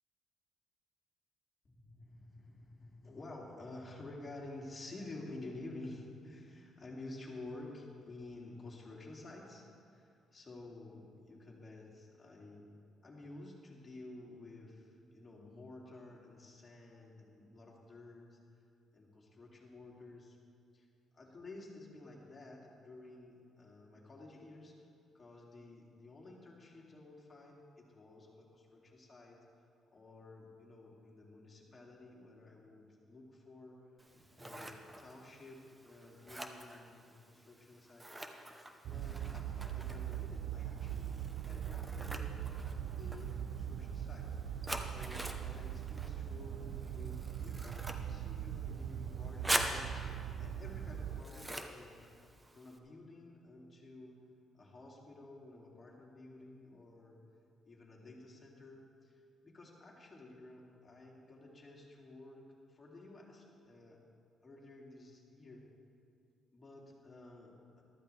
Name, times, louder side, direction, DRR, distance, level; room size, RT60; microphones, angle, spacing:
voice 1, 1.6-12.7 13.0-18.4 18.9-20.4 20.7-20.9 21.1-24.7 25.1-29.4 29.9-33.8 34.3-38.5 38.8-42.3 43.0-54.2 54.5-57.2 57.6-64.0 64.4-65.6 66.5-67.8, left 2 dB, 30° left, -3 dB, 2.5 m, -52 dB
Scissors, 34.0-52.8, right 1 dB, 15° right, 0.9 m, -45 dB
sound 1, 38.8-51.2, right 9 dB, 75° right, 0.4 m, -41 dB
14.5 x 12.5 x 3.4 m, 2.4 s
cardioid pair, 90°, 0 cm